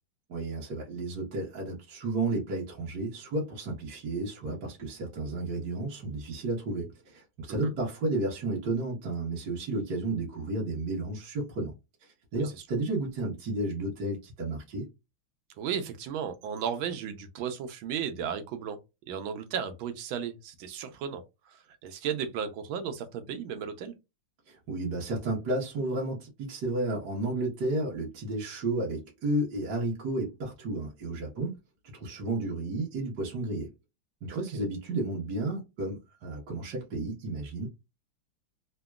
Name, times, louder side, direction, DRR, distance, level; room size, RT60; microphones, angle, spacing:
voice 1, 0.3-11.7 12.0-14.9 24.5-31.6 32.0-33.7 34.2-37.7, right 2 dB, 55° right, 1.6 m, -32 dB
voice 2, 15.6-18.8 19.1-23.9 34.3-34.7, right 7 dB, 80° right, 1.5 m, -35 dB
3.9 x 2.1 x 2.3 m
omnidirectional pair, 2.2 m